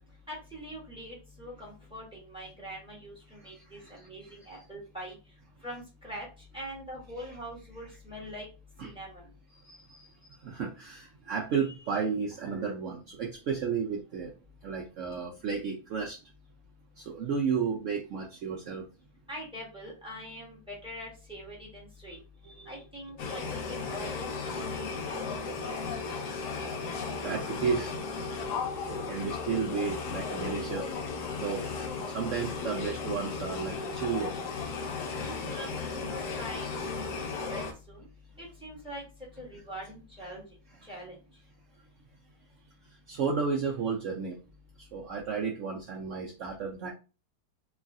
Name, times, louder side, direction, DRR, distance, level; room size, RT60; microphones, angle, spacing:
voice 1, 0.3-5.2 5.6-6.3 6.5-8.5 8.8-9.2 19.3-22.2 22.6-25.8 35.1-38.0 38.4-39.0 39.4-40.4 40.8-41.2, equal, 5° right, -4 dB, 1.0 m, -43 dB
voice 2, 3.4-4.1 8.8-8.9 9.6-10.1 10.4-14.3 14.6-16.2 17.0-18.8 22.1-22.8 26.5-28.0 28.8-30.9 31.4-31.7 32.0-34.4 43.1-44.4 44.9-46.9, right 6 dB, 75° right, -1 dB, 0.7 m, -33 dB
sound 1, 23.2-37.7, left 4 dB, 80° left, 1.2 m, -35 dB
3.1 x 2.3 x 2.6 m, 0.32 s
omnidirectional pair, 1.8 m